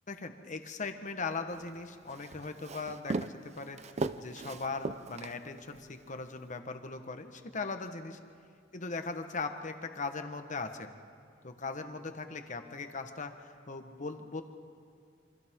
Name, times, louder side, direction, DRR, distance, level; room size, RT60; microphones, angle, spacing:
voice 1, 0.1-3.8 4.2-8.2 8.7-10.9 11.4-14.4, left 4 dB, 40° left, 7 dB, 1.2 m, -39 dB
Walk footsteps, 1.5-5.9, right 3 dB, 35° right, 0.5 m, -38 dB
28.0 x 25.5 x 3.7 m, 2.3 s
head